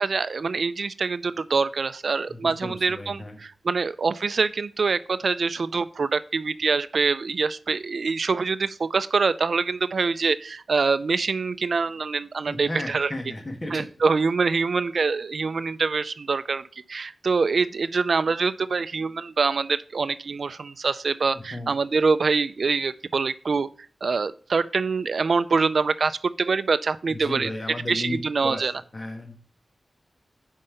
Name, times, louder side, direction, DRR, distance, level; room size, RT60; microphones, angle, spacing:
voice 1, 0.0-13.1 13.7-16.6 16.9-23.7 24.0-27.5 27.9-28.7, right 4 dB, 65° right, 14 dB, 0.4 m, -25 dB
voice 2, 2.3-3.4 12.5-13.8 21.3-21.7 27.1-28.6 28.9-29.4, left 1 dB, 30° left, 2 dB, 1.3 m, -34 dB
5.4 x 5.3 x 6.7 m, 0.41 s
wide cardioid pair, 100°, 0 cm